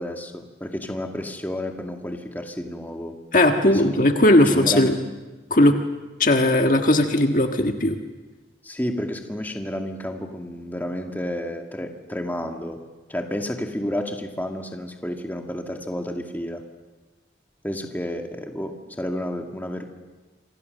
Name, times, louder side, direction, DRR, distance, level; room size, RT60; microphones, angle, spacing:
voice 1, 0.0-3.2 3.6-3.8 4.5-4.9 8.6-12.8 13.1-16.6 17.6-19.8, left 1 dB, 10° left, 3 dB, 2.1 m, -31 dB
voice 2, 3.3-4.9 5.5-5.8 6.2-8.0, left 1 dB, 45° left, 4 dB, 1.6 m, -18 dB
28.0 x 25.5 x 6.7 m, 1.2 s
head